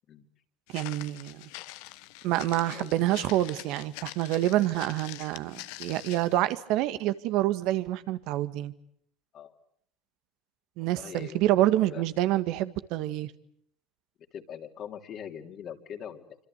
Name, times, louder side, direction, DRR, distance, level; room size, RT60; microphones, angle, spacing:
Walk footsteps, 0.7-6.4, left 18 dB, 75° left, 1.1 m, -44 dB
voice 1, 0.7-1.4 2.2-8.7 10.8-13.3, right 14 dB, 70° right, 12 dB, 1.8 m, -27 dB
voice 2, 11.0-11.4 11.8-12.0 14.3-16.4, left 8 dB, 50° left, 4 dB, 3.3 m, -42 dB
27.0 x 26.0 x 8.2 m, 0.67 s
hypercardioid pair, 80°, 0 cm